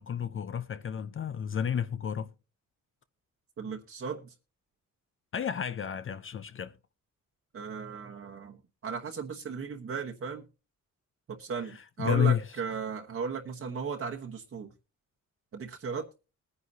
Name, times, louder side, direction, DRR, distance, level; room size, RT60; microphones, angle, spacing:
voice 1, 0.0-2.3 5.3-6.7 11.7-12.4, left 8 dB, 40° left, 0.6 m, -31 dB
voice 2, 3.6-4.3 7.5-8.6 8.8-10.4 11.3-14.7 15.5-16.0, right 5 dB, 45° right, 1.1 m, -36 dB
21.0 x 9.7 x 2.7 m
wide cardioid pair, 160°, 31 cm